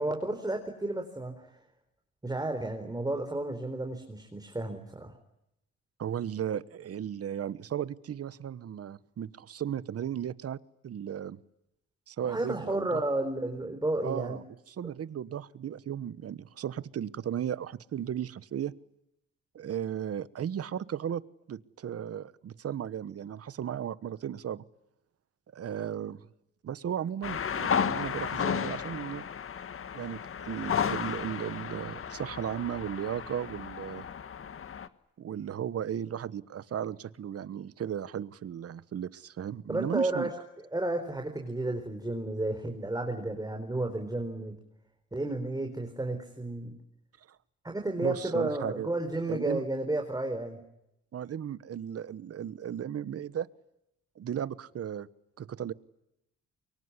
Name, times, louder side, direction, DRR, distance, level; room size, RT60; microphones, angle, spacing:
voice 1, 0.0-1.4 2.2-5.1 12.2-14.4 39.7-40.3 40.7-44.6 45.1-46.7 47.6-50.6, right 2 dB, 15° right, 4 dB, 4.3 m, -32 dB
voice 2, 6.0-10.6 10.8-11.4 12.1-13.0 14.0-18.7 19.5-21.2 21.5-24.6 25.5-26.3 26.6-29.2 29.9-34.1 35.2-40.3 47.3-47.4 48.0-48.9 49.3-49.6 51.1-53.5 54.2-55.1 55.4-55.7, right 9 dB, 50° right, 17 dB, 1.2 m, -35 dB
sound 1, 27.2-34.9, left 7 dB, 45° left, 1.5 m, -33 dB
24.5 x 23.5 x 9.9 m, 0.84 s
cardioid pair, 90°, 30 cm